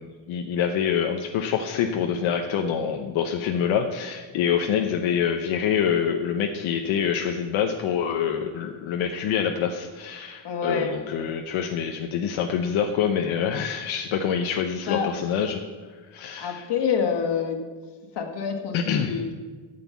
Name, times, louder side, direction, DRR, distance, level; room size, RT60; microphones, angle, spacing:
voice 1, 0.0-15.6 16.1-16.7 18.7-19.1, left 7 dB, 80° left, 3 dB, 0.9 m, -26 dB
voice 2, 10.4-10.9 14.9-15.1 16.4-17.6 18.1-19.3, left 6 dB, 60° left, 3 dB, 1.7 m, -27 dB
9.3 x 6.8 x 8.3 m, 1.4 s
cardioid pair, 140°, 47 cm